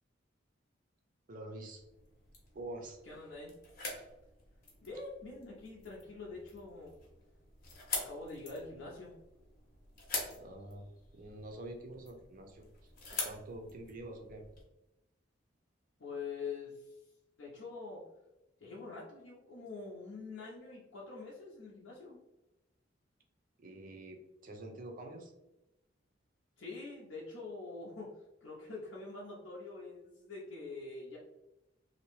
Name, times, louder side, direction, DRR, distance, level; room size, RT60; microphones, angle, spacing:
voice 1, 1.3-1.8 2.5-3.0 10.4-10.8 11.1-12.7 13.2-14.5 23.6-25.3, right 1 dB, 45° right, 3 dB, 0.5 m, -46 dB
sound 1, 1.7-14.6, left 3 dB, 50° left, 0.8 m, -45 dB
voice 2, 3.0-3.6 4.8-6.9 7.9-9.1 16.0-17.0 17.4-18.0 18.6-22.2 26.6-28.1 28.4-31.2, left 3 dB, 80° left, -5 dB, 0.6 m, -45 dB
2.8 x 2.1 x 3.0 m, 0.94 s
head